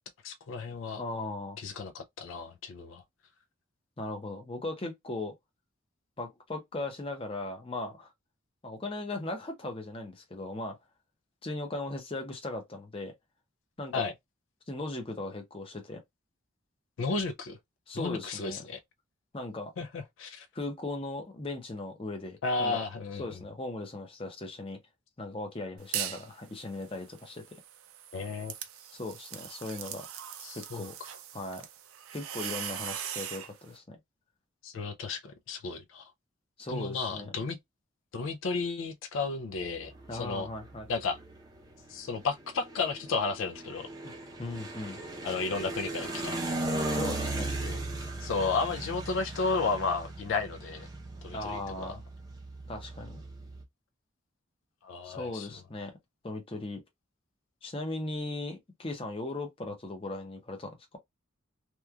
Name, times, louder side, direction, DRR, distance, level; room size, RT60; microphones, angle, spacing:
voice 1, 0.2-1.0 1.6-3.0 13.9-14.1 17.0-17.6 17.9-18.8 19.8-20.5 22.4-23.2 28.1-28.5 30.4-30.9 34.6-36.1 36.7-37.6 38.1-40.5 40.9-41.2 41.9-43.9 45.2-46.4 47.6-47.8 48.2-50.9 51.2-52.0 54.8-55.5, left 4 dB, 70° left, 0.4 m, -33 dB
voice 2, 1.0-1.6 4.0-5.3 6.2-8.1 8.6-10.8 11.4-13.1 13.8-14.1 14.7-16.0 17.9-18.6 19.3-19.7 20.5-22.8 23.2-24.8 25.2-27.4 28.9-30.1 30.5-31.0 31.3-31.7 32.1-34.0 36.6-37.3 40.1-40.9 44.0-44.1 44.4-45.0 46.9-47.5 51.3-52.0 52.7-53.2 55.0-56.0 56.2-56.8 57.6-60.8, left 2 dB, 25° left, 0.6 m, -38 dB
sound 1, 25.8-26.3 26.7-33.5, right 10 dB, 85° right, 0.5 m, -40 dB
sound 2, 39.5-53.6, right 2 dB, 20° right, 0.6 m, -38 dB
3.0 x 2.3 x 2.3 m
head